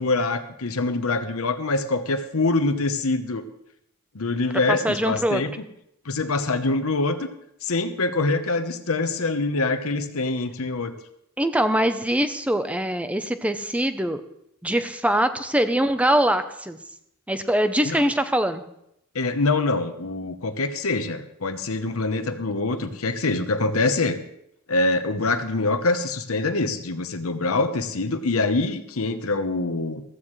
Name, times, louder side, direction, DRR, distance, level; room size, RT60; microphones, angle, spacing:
voice 1, 0.0-3.4 4.1-5.5 6.0-7.3 7.6-10.9 17.8-18.0 19.1-24.2 24.7-30.0, left 3 dB, 75° left, 9 dB, 1.0 m, -24 dB
voice 2, 4.7-5.4 11.4-14.2 14.6-16.8 17.3-18.6, right 1 dB, 5° right, 9 dB, 0.7 m, -23 dB
15.0 x 14.5 x 3.2 m, 0.78 s
head